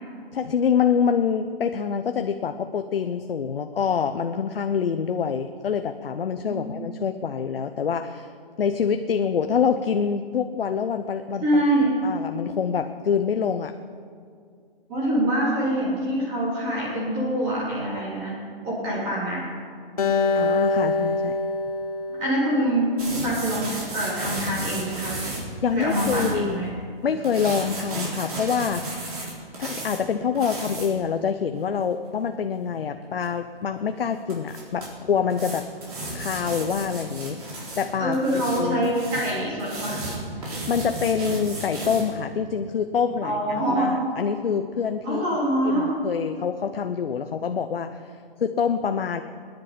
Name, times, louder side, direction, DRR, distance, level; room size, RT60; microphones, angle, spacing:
voice 1, 0.3-8.3 8.6-11.6 12.0-13.7 20.3-21.4 25.6-26.6 27.0-29.1 29.6-35.6 36.1-38.9 40.3-45.4 45.6-48.0 48.4-49.2, left 7 dB, 75° left, 7 dB, 0.8 m, -26 dB
voice 2, 11.4-12.0 14.9-19.4 22.2-25.2 25.7-26.7 38.0-40.0 43.2-44.0 45.0-45.9, right 1 dB, 15° right, -6 dB, 3.4 m, -25 dB
Acoustic guitar, 20.0-23.3, left 3 dB, 40° left, 1.4 m, -25 dB
sound 1, 23.0-26.4 27.2-30.0 30.4-30.9 33.2-33.3 34.3-34.9 35.3-37.9 38.1-42.1, right 2 dB, 40° right, 4.1 m, -33 dB
22.0 x 10.5 x 5.1 m, 2.3 s
hypercardioid pair, 180°, 29 cm